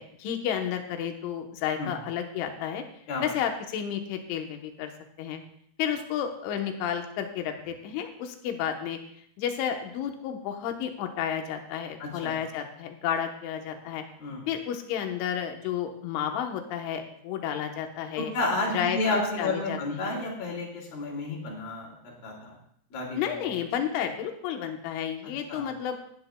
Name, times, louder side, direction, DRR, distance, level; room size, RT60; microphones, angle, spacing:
voice 1, 0.0-2.8 3.2-4.9 5.2-5.4 5.8-9.0 9.4-14.0 14.5-18.3 18.7-19.0 19.4-20.2 23.2-26.0, left 9 dB, 75° left, 5 dB, 3.3 m, -31 dB
voice 2, 12.0-12.3 14.2-14.5 18.2-22.6 22.9-23.4 25.5-25.6, left 2 dB, 55° left, -1 dB, 3.9 m, -31 dB
18.5 x 10.5 x 2.3 m, 0.66 s
omnidirectional pair, 5.7 m